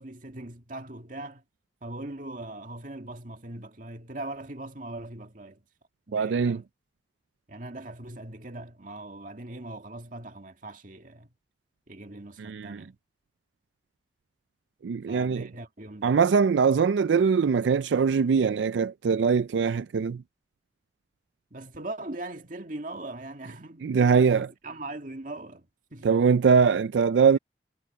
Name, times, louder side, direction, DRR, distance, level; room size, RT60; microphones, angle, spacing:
voice 1, 0.0-1.4 1.8-5.6 6.1-6.6 7.5-11.3 11.9-12.9 15.1-16.2 21.5-26.1, right 2 dB, 50° right, 2.1 m, -40 dB
voice 2, 6.1-6.6 12.4-12.8 14.8-15.4 16.0-20.2 23.8-24.5 26.0-27.4, right 6 dB, 90° right, 0.4 m, -22 dB
head